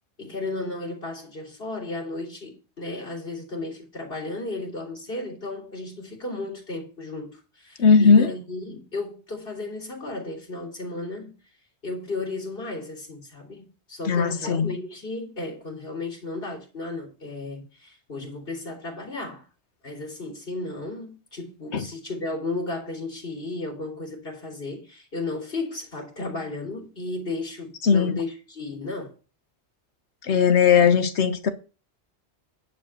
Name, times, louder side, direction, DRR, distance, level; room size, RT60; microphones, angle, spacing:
voice 1, 0.2-11.4 11.8-19.5 19.8-29.1, left 2 dB, 55° left, 3.4 m, -34 dB
voice 2, 7.8-8.3 14.1-14.7 21.7-21.8 27.8-28.1 30.2-31.5, left 6 dB, 85° left, 1.4 m, -18 dB
10.5 x 5.2 x 6.6 m
omnidirectional pair, 1.1 m